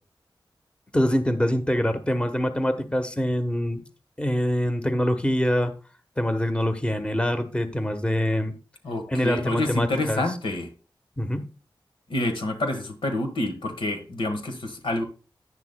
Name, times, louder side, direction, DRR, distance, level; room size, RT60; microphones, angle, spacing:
voice 1, 0.9-3.8 4.2-5.7 6.2-8.5 9.1-10.2 11.2-11.5, equal, 15° left, 1.1 m, -24 dB
voice 2, 8.8-10.7 12.1-15.0, left 2 dB, 90° left, 1.4 m, -28 dB
10.5 x 9.6 x 2.2 m
wide cardioid pair, 70°, 9 cm